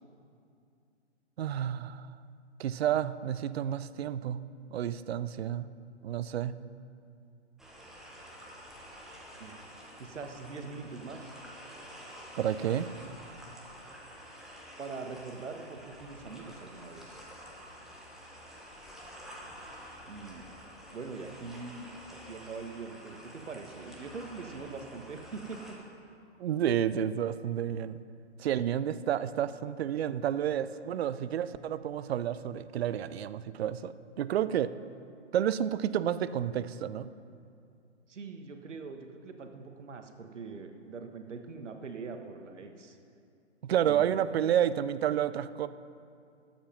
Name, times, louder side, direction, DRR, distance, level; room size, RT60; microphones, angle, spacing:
voice 1, 1.4-2.1 2.6-4.4 4.7-5.7 6.0-6.6 12.4-12.9 26.4-28.0 28.4-34.7 35.3-37.1 43.6-45.7, right 10 dB, 60° right, 14 dB, 0.5 m, -30 dB
sound 1, 7.6-25.8, equal, ahead, 0.8 m, -49 dB
voice 2, 9.4-9.7 10.0-11.4 14.8-17.2 20.0-20.4 20.9-21.9 22.3-25.8 38.1-43.0 43.8-44.3, right 4 dB, 80° right, 6 dB, 1.3 m, -43 dB
12.5 x 7.4 x 5.8 m, 2.5 s
hypercardioid pair, 145°, 36 cm